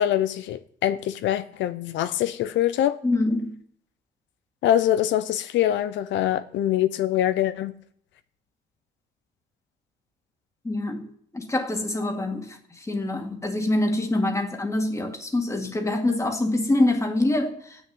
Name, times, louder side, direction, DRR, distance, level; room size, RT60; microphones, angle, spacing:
voice 1, 0.0-3.0 4.6-7.7, left 11 dB, 85° left, 0.7 m, -24 dB
voice 2, 3.0-3.6 10.6-11.1 11.3-17.8, left 2 dB, 15° left, 2.1 m, -25 dB
14.0 x 6.6 x 9.5 m
cardioid pair, 130°, 19 cm